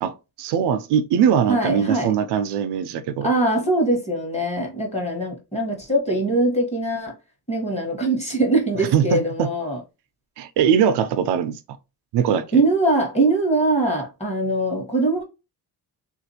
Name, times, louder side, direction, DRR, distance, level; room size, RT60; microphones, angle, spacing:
voice 1, 0.0-3.3 8.9-9.5 10.4-11.6 12.1-12.6, right 8 dB, 80° right, 0.5 m, -21 dB
voice 2, 1.5-2.1 3.2-7.1 7.5-9.8 12.5-15.2, right 2 dB, 15° left, 1.1 m, -22 dB
3.5 x 2.5 x 2.7 m
cardioid pair, 135°, 40 cm